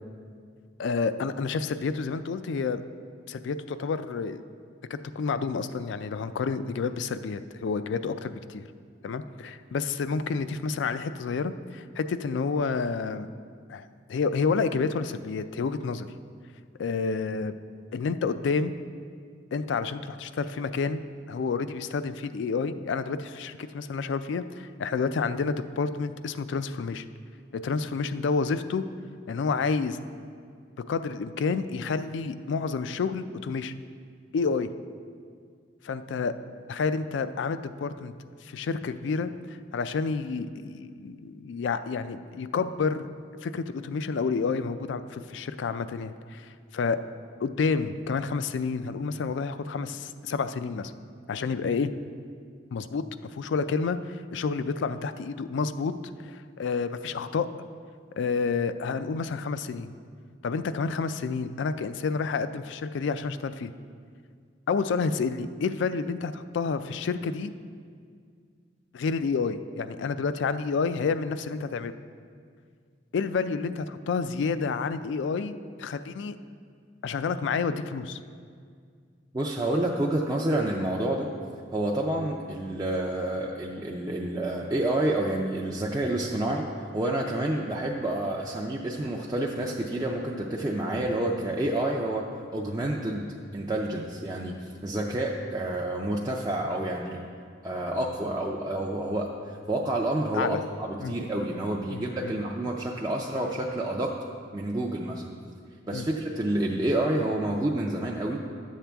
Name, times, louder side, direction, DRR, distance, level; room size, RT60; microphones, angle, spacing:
voice 1, 0.8-2.8 3.3-4.4 4.9-8.7 9.0-13.3 13.7-16.1 16.8-17.5 17.9-18.7 19.5-27.0 27.5-28.9 29.3-30.0 30.9-33.7 34.3-34.7 35.8-36.3 36.7-38.1 38.4-43.1 43.4-47.0 47.4-50.9 51.3-51.9 52.7-55.9 56.2-57.5 58.2-59.9 60.4-63.7 64.7-67.5 68.9-71.9 73.1-76.4 77.0-78.2 100.3-100.6 101.0-101.1 101.9-102.3 105.9-106.1, left 5 dB, 70° left, 12 dB, 0.3 m, -29 dB
voice 2, 79.3-81.3 81.7-86.6 86.9-97.2 97.6-104.1 104.5-105.2 105.9-108.4, right 1 dB, 20° right, -2 dB, 0.4 m, -29 dB
11.0 x 7.4 x 3.4 m, 2.1 s
head